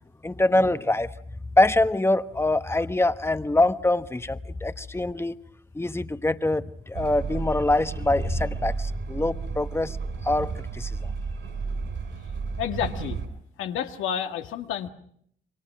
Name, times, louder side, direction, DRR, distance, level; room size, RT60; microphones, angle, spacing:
voice 1, 0.2-1.1 1.5-5.3 5.7-10.0 10.2-11.1, left 2 dB, 10° left, 1.1 m, -24 dB
Train, 6.9-13.3, right 4 dB, 65° right, 5.9 m, -32 dB
voice 2, 12.6-13.2 13.6-14.9, left 9 dB, 85° left, 2.0 m, -30 dB
28.0 x 24.0 x 6.0 m
cardioid pair, 90°, 20 cm